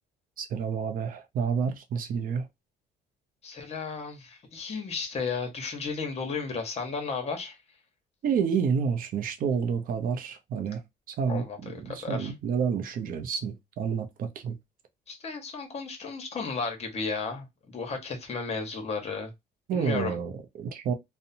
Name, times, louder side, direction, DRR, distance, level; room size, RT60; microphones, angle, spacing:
voice 1, 0.4-2.5 8.2-10.8 11.1-14.6 19.7-20.9, right 6 dB, 55° right, 0.6 m, -29 dB
voice 2, 3.4-7.6 11.3-12.3 15.1-19.3 19.7-20.2, left 4 dB, 40° left, 1.0 m, -34 dB
2.7 x 2.1 x 2.6 m
cardioid pair, 110°, 17 cm